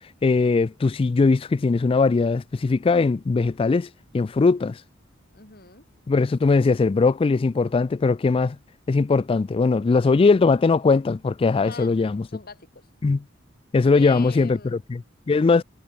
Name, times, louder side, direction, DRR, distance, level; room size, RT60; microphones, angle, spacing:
voice 1, 0.2-3.9 4.1-4.8 6.1-8.6 8.9-12.2 13.0-13.2 13.7-15.6, left 4 dB, 30° left, 0.3 m, -20 dB
voice 2, 5.3-5.9 11.6-11.9 12.3-12.9 13.9-14.8, left 4 dB, 50° left, 5.2 m, -42 dB
head